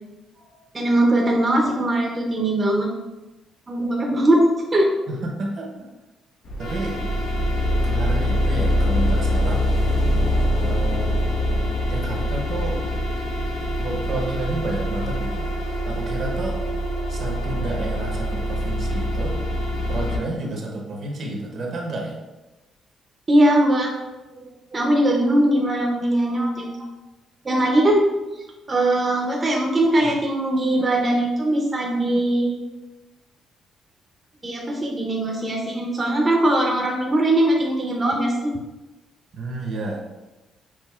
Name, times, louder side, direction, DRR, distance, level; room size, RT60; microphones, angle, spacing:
voice 1, 0.7-2.9 3.7-4.4 4.7-4.9 23.3-23.9 24.3-26.7 27.4-28.0 28.3-32.6 34.4-38.5, right 1 dB, 30° right, -1 dB, 0.7 m, -20 dB
voice 2, 5.1-5.7 6.6-7.0 7.8-9.7 10.6-11.3 11.9-12.9 13.8-15.5 15.8-16.6 17.1-19.4 19.9-22.2 30.0-30.1 39.3-40.0, right 2 dB, 60° right, 0 dB, 0.9 m, -30 dB
sound 1, 6.5-20.2, equal, 75° left, 0.9 m, -24 dB
6.0 x 2.6 x 2.4 m, 1.1 s
cardioid pair, 90°, 0 cm